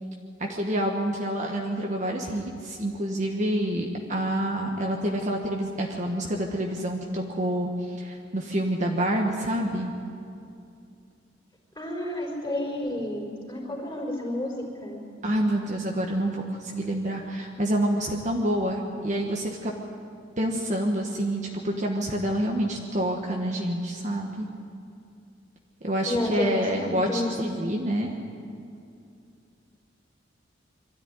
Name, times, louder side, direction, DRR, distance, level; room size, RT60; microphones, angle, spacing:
voice 1, 0.4-9.9 15.2-19.7 20.4-24.5 25.8-28.2, right 1 dB, 40° right, 0 dB, 1.5 m, -27 dB
voice 2, 11.8-15.0 26.1-27.4, left 1 dB, 15° left, -3 dB, 4.4 m, -30 dB
23.0 x 13.5 x 9.7 m, 2.5 s
head